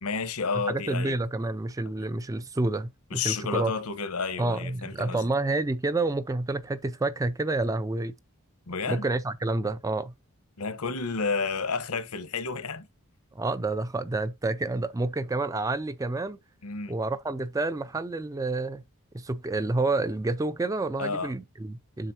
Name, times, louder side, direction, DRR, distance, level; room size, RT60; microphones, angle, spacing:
voice 1, 0.0-1.2 3.1-5.3 8.7-9.1 10.6-12.9 16.6-17.0 21.0-21.3, left 4 dB, 85° left, 1.1 m, -31 dB
voice 2, 0.5-3.7 4.4-8.1 8.9-10.1 13.3-16.4 16.9-18.8 19.1-22.1, right 2 dB, 15° right, 0.3 m, -29 dB
7.5 x 5.9 x 2.8 m
head